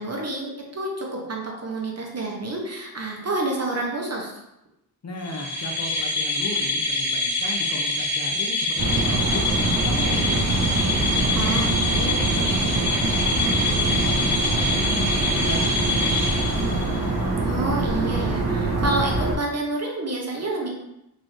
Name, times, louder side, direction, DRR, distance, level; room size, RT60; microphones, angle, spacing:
voice 1, 0.0-4.4 11.4-11.6 17.4-20.7, right 2 dB, 40° right, 0 dB, 0.8 m, -28 dB
voice 2, 5.0-10.9 11.6-15.1 15.4-17.1, left 2 dB, 45° left, 0 dB, 0.6 m, -36 dB
sound 1, 5.2-17.1, left 2 dB, 5° right, 0.8 m, -25 dB
sound 2, 8.8-19.4, right 2 dB, 75° right, 0.8 m, -24 dB
4.1 x 2.6 x 3.0 m, 0.86 s
wide cardioid pair, 125°, 38 cm